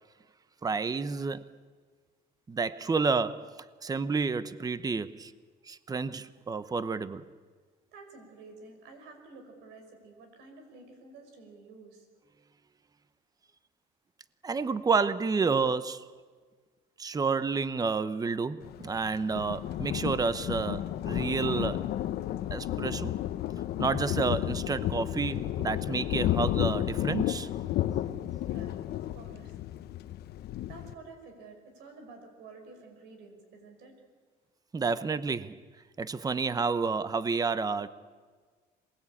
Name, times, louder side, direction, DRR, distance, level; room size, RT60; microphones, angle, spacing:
voice 1, 0.6-1.5 2.5-5.3 5.7-7.2 14.4-16.1 17.0-21.8 22.5-23.1 23.8-27.5 34.7-35.6 36.0-37.9, right 4 dB, 20° right, 0.9 m, -30 dB
voice 2, 7.9-12.1 28.4-29.5 30.7-33.9, right 3 dB, 85° right, 5.8 m, -50 dB
Thunder, 18.6-30.9, left 13 dB, 70° left, 1.0 m, -32 dB
27.0 x 20.0 x 8.7 m
cardioid pair, 110°, 17 cm